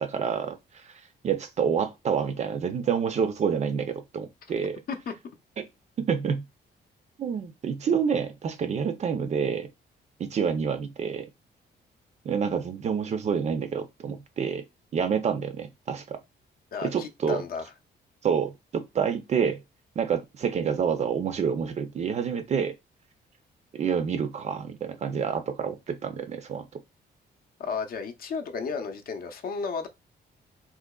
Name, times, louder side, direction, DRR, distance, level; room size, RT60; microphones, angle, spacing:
voice 1, 0.0-4.8 5.6-5.7 6.0-6.4 7.2-9.7 10.2-11.3 12.2-14.6 14.9-16.2 16.8-17.4 18.2-19.6 20.0-22.7 23.7-26.6, right 7 dB, 40° right, 0.4 m, -28 dB
voice 2, 16.7-17.6 27.6-29.9, left 5 dB, 55° left, 0.6 m, -33 dB
3.7 x 2.8 x 2.3 m
cardioid pair, 165°, 18 cm